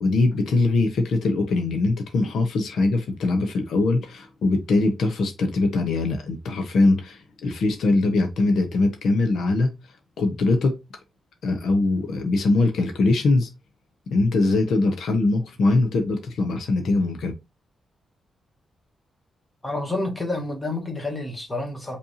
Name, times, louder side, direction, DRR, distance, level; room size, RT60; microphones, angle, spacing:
voice 1, 0.0-9.7 10.2-10.7 11.4-13.5 14.1-17.3, left 2 dB, 70° left, 1.1 m, -22 dB
voice 2, 19.6-22.0, left 2 dB, 10° left, 2.0 m, -29 dB
5.6 x 3.4 x 2.8 m
wide cardioid pair, 155°, 0 cm